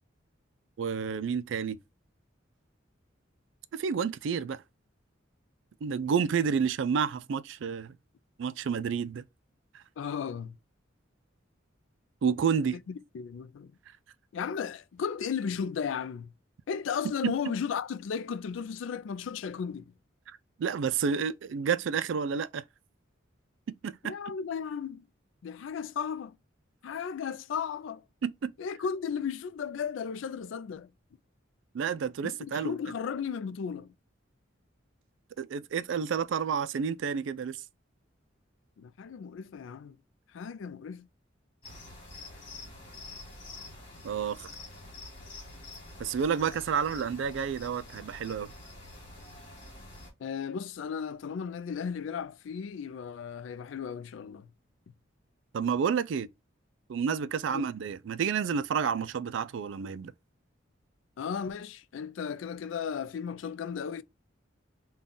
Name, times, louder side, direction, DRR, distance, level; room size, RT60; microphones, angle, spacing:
voice 1, 0.8-1.8 3.7-4.6 5.8-8.0 8.4-9.2 9.7-9.8 12.2-12.8 17.2-17.3 20.6-22.6 23.7-24.1 28.2-28.5 31.7-32.7 35.4-37.6 44.0-44.5 46.0-48.5 55.5-56.3 56.9-60.1, right 6 dB, 70° right, 0.3 m, -30 dB
voice 2, 10.0-10.6 12.7-13.7 14.3-16.3 16.7-19.9 24.0-25.1 25.4-26.4 26.8-28.0 28.6-30.9 32.2-33.9 38.8-40.0 40.3-41.1 50.2-54.5 57.5-57.6 61.2-64.0, left 6 dB, 70° left, 0.3 m, -35 dB
sound 1, 41.6-50.1, left 2 dB, 25° left, 2.0 m, -47 dB
3.7 x 2.3 x 3.8 m
head